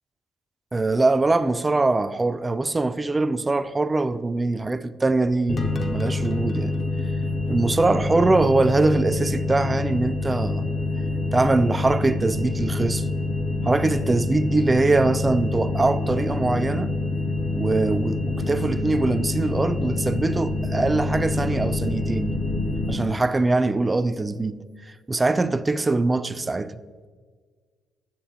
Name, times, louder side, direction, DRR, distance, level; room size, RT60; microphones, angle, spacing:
voice 1, 0.7-6.7 7.5-10.7 11.3-13.1 13.6-16.9 17.5-22.4 22.9-24.6 24.9-26.7, right 2 dB, 25° right, 0.4 m, -22 dB
sound 1, 5.5-22.9, left 2 dB, 45° left, 0.9 m, -26 dB
9.0 x 7.3 x 2.9 m
hypercardioid pair, 50°, 0 cm